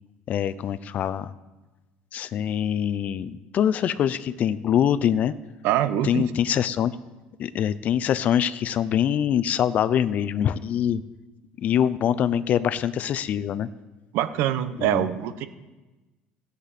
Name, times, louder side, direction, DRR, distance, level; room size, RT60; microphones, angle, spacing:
voice 1, 0.3-1.3 2.1-5.3 6.0-7.0 7.4-11.0 11.6-13.7 14.8-15.1, left 9 dB, 40° left, 15 dB, 0.5 m, -24 dB
voice 2, 5.6-6.2 14.1-15.5, right 12 dB, 70° right, 12 dB, 0.8 m, -24 dB
16.0 x 8.2 x 4.2 m, 1.1 s
cardioid pair, 145°, 4 cm